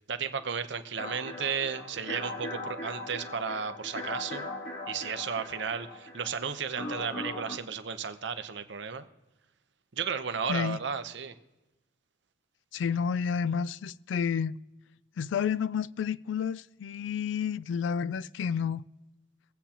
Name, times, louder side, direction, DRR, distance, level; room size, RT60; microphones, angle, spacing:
voice 1, 0.0-4.5 4.9-9.1 9.9-11.3, right 6 dB, 65° right, 0.8 m, -34 dB
sound 1, 1.0-7.6, left 1 dB, 50° left, 1.6 m, -39 dB
voice 2, 10.5-10.8 12.7-14.6 15.2-18.8, left 7 dB, 70° left, 0.3 m, -30 dB
22.5 x 8.2 x 2.9 m
head